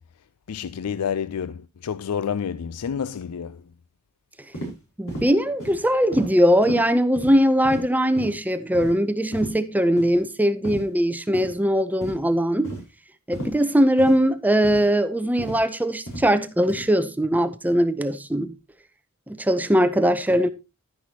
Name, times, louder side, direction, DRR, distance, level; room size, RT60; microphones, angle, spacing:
voice 1, 0.5-3.7, left 7 dB, 90° left, 0.4 m, -29 dB
sound 1, 4.5-4.7 5.1-5.3 5.6-5.8 6.1-6.3 6.6-6.8 7.2-7.3 7.6-7.8 8.2-8.3 8.7-8.9 9.3-9.5 10.0-10.2 10.6-10.8 11.3-11.5 12.0-12.2 12.6-12.8 13.3-13.5 14.0-14.2 14.6-14.8 15.4-15.6 16.1-16.3 16.7-16.8, right 1 dB, 65° left, 6.1 m, -33 dB
voice 2, 5.0-12.7 13.3-18.5 19.3-20.5, equal, 5° right, 0.6 m, -21 dB
11.5 x 10.0 x 2.8 m
head